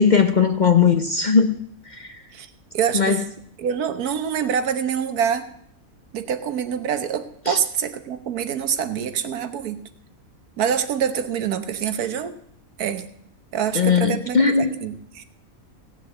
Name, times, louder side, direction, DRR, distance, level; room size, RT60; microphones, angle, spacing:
voice 1, 0.0-1.5 1.9-2.2 2.9-3.3 7.5-7.6 13.7-14.8, left 6 dB, 40° left, 7 dB, 0.7 m, -18 dB
voice 2, 2.7-3.2 3.6-5.5 6.1-9.8 10.6-12.3 12.8-13.0 13.5-15.2, right 8 dB, 85° right, 10 dB, 1.5 m, -25 dB
16.0 x 7.2 x 7.7 m, 0.68 s
omnidirectional pair, 1.6 m